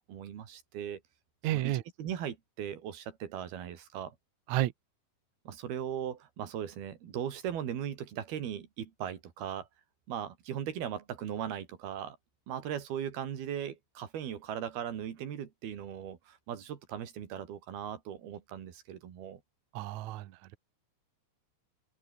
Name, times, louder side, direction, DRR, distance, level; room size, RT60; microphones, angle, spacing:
voice 1, 0.1-1.0 1.5-4.2 5.5-9.7 10.1-12.2 12.5-19.4, right 9 dB, 90° right, 4.4 m, -38 dB
voice 2, 1.4-1.8 4.5-4.7 19.7-20.6, right 15 dB, 70° right, 1.8 m, -31 dB
omnidirectional pair, 4.3 m